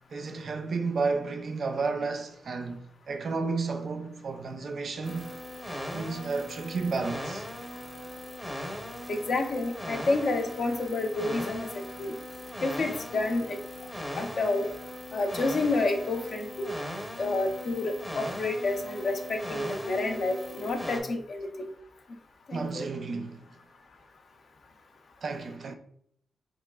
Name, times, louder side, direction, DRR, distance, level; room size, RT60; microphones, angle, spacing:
voice 1, 0.1-5.3 5.9-7.4 22.5-23.4 25.2-25.8, right 4 dB, 55° right, 0.4 m, -32 dB
sound 1, 5.0-21.0, equal, 10° left, 0.8 m, -39 dB
voice 2, 9.1-11.7 12.0-12.1 12.6-13.6 14.2-14.6 15.1-16.7 17.2-21.5 22.5-22.9, left 2 dB, 55° left, 0.5 m, -29 dB
4.0 x 3.0 x 2.2 m
cardioid pair, 100°, 0 cm